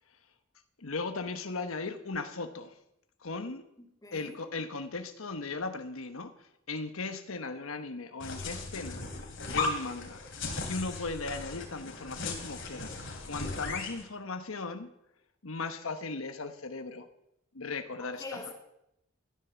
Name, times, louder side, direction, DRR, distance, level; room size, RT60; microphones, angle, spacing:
voice 1, 0.8-2.7 3.2-3.6 4.1-9.0 9.5-10.2 10.5-14.9 15.4-17.1 17.5-18.4, left 3 dB, 85° left, 8 dB, 1.1 m, -37 dB
voice 2, 3.8-4.4 18.0-18.5, left 3 dB, 20° left, 2 dB, 2.7 m, -44 dB
sound 1, 8.2-14.0, left 3 dB, 65° left, 3.3 m, -37 dB
14.0 x 10.5 x 7.0 m, 0.81 s
head